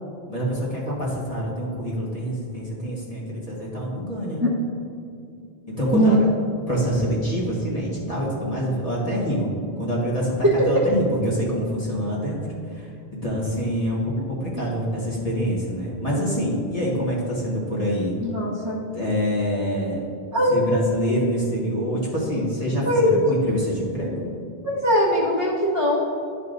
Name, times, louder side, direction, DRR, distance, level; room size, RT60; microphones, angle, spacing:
voice 1, 0.3-4.4 5.7-6.2 6.7-9.5 9.8-12.4 12.7-12.9 13.2-14.0 14.3-18.2 18.9-20.0 20.5-24.3, equal, 35° left, -6 dB, 1.6 m, -26 dB
voice 2, 18.2-18.8 20.3-20.5 22.9-23.2 24.6-26.0, equal, 15° right, -8 dB, 1.0 m, -20 dB
11.5 x 5.5 x 2.6 m, 2.5 s
omnidirectional pair, 1.0 m